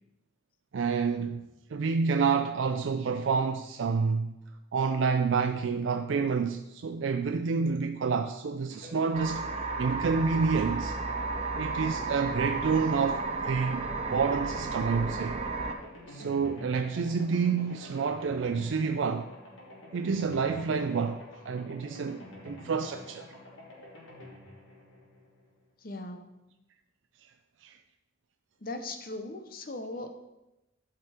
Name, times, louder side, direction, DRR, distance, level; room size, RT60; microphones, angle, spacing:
voice 1, 0.7-1.4 1.7-4.3 4.7-9.5 9.8-11.0 11.5-15.4 16.1-19.3 19.9-23.3 27.6-27.8, right 5 dB, 70° right, 0.4 m, -28 dB
sound 1, 8.7-25.6, left 1 dB, 70° left, 2.3 m, -47 dB
sound 2, 9.1-15.7, right 3 dB, 30° right, 0.6 m, -33 dB
voice 2, 25.8-26.3 28.6-30.1, left 2 dB, 45° left, 0.8 m, -38 dB
12.0 x 5.2 x 4.3 m
head